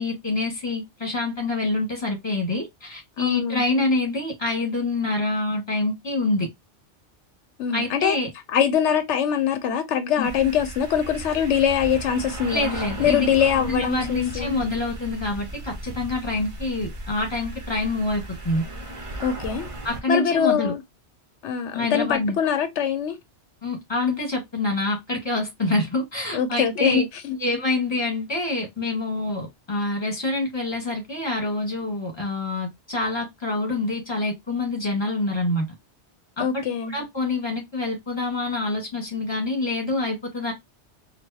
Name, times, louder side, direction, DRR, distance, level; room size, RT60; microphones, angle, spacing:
voice 1, 0.0-6.5 7.7-8.3 10.2-10.3 12.5-13.3 13.6-18.6 19.8-20.7 21.7-22.4 23.6-27.0 27.4-35.7 36.4-40.5, left 2 dB, 25° left, 1.6 m, -26 dB
voice 2, 3.2-3.9 7.6-8.2 8.5-12.7 13.0-14.6 19.2-19.7 20.1-20.8 21.4-23.2 26.3-27.4 36.4-36.9, left 8 dB, 80° left, 0.9 m, -23 dB
sound 1, 10.2-20.0, right 1 dB, 30° right, 0.8 m, -36 dB
4.5 x 2.3 x 2.7 m
omnidirectional pair, 1.2 m